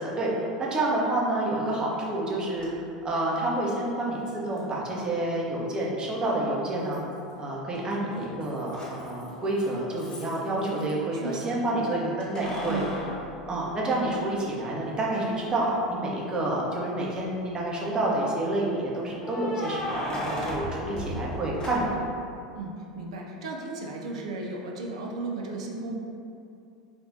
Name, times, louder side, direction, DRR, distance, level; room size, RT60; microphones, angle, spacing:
voice 1, 0.0-2.7 3.0-7.0 7.4-12.8 13.5-22.1, right 1 dB, 25° right, -4 dB, 0.8 m, -28 dB
Keys jangling, 2.6-2.7 4.6-4.7 6.9-7.5 7.7-10.9 12.2-14.3 14.8-14.9 16.7-17.2 19.2-22.2, equal, 25° left, 0.8 m, -36 dB
voice 2, 10.7-11.6 12.7-12.9 22.5-26.0, right 3 dB, 65° right, -1 dB, 0.4 m, -35 dB
3.6 x 2.4 x 3.7 m, 2.6 s
figure-of-eight pair, 80°, 4 cm